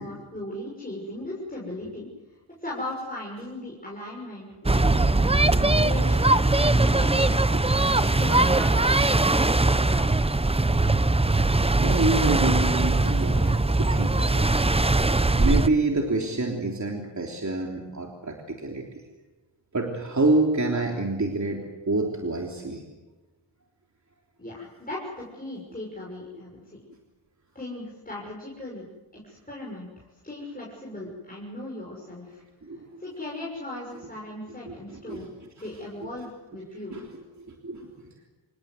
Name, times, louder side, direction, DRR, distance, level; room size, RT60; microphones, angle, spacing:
voice 1, 0.0-2.1 2.6-7.4 7.7-10.4 24.4-26.8 27.5-28.8 29.1-32.4 33.0-35.3 35.6-37.0, left 1 dB, 20° left, -4 dB, 6.4 m, -38 dB
sound 1, 4.7-15.7, right 2 dB, 15° right, 0.8 m, -21 dB
voice 2, 11.8-14.5 15.4-19.0 19.7-21.6 21.9-22.8 32.6-33.0 34.7-35.5 36.9-37.1 37.4-37.9, right 2 dB, 35° right, 1 dB, 3.4 m, -27 dB
26.5 x 20.0 x 8.0 m, 1.2 s
cardioid pair, 65°, 47 cm